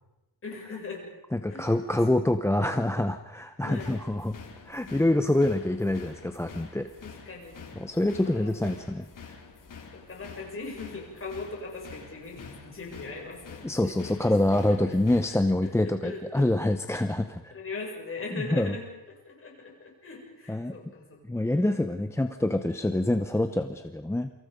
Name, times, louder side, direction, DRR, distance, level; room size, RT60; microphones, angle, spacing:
voice 1, 0.4-1.0 1.5-1.7 3.6-3.9 7.0-7.7 8.2-8.5 9.9-13.9 14.2-15.0 15.3-16.5 17.5-18.9 19.2-21.5, left 3 dB, 30° left, 0 dB, 6.7 m, -40 dB
voice 2, 1.3-4.4 4.7-6.9 7.8-9.1 13.6-17.5 18.5-18.8 20.5-20.7 21.3-24.3, left 1 dB, 5° left, 8 dB, 0.7 m, -26 dB
sound 1, 3.7-15.3, left 5 dB, 50° left, 3.5 m, -47 dB
28.0 x 25.5 x 5.2 m, 1.0 s
wide cardioid pair, 175°, 41 cm